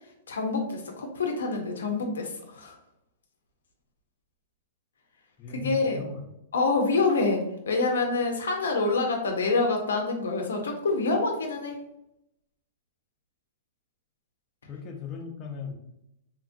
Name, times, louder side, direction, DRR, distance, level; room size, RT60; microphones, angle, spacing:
voice 1, 0.3-2.8 5.5-6.0 6.5-11.8, left 3 dB, 85° left, 2 dB, 0.5 m, -26 dB
voice 2, 5.4-6.2 14.7-15.7, left 6 dB, 25° left, 1 dB, 0.6 m, -37 dB
2.9 x 2.4 x 2.4 m, 0.81 s
hypercardioid pair, 125°, 0 cm